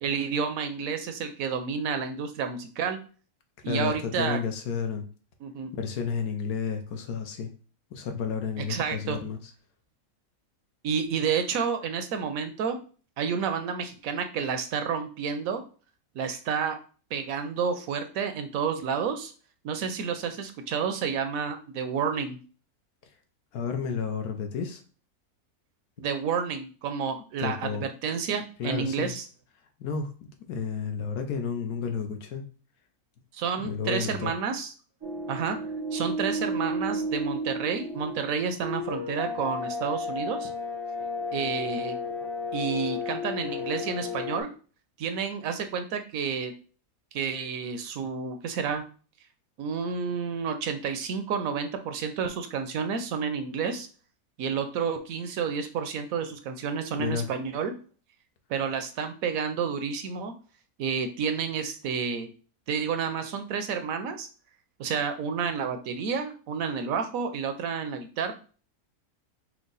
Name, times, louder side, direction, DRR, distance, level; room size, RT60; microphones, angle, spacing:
voice 1, 0.0-3.0 3.6-4.4 5.4-5.7 8.6-9.2 10.8-12.8 13.2-15.6 16.1-16.8 17.1-19.3 19.6-22.4 26.0-29.2 33.3-34.7 35.3-35.6 35.9-40.5 41.3-42.0 42.5-44.5 45.0-46.5 47.1-48.8 49.6-53.9 54.4-57.7 58.5-60.3 60.8-62.3 62.7-64.3 64.8-68.3, right 6 dB, 70° right, 7 dB, 1.0 m, -30 dB
voice 2, 3.7-5.0 5.7-7.5 7.9-9.4 23.5-24.8 27.4-27.8 28.6-29.1 29.8-30.1 30.5-32.4 33.6-34.3 56.9-57.3, left 6 dB, 80° left, 6 dB, 1.2 m, -31 dB
sound 1, 35.0-44.4, left 1 dB, 25° right, 0.6 m, -33 dB
4.6 x 2.2 x 3.9 m, 0.38 s
omnidirectional pair, 1.6 m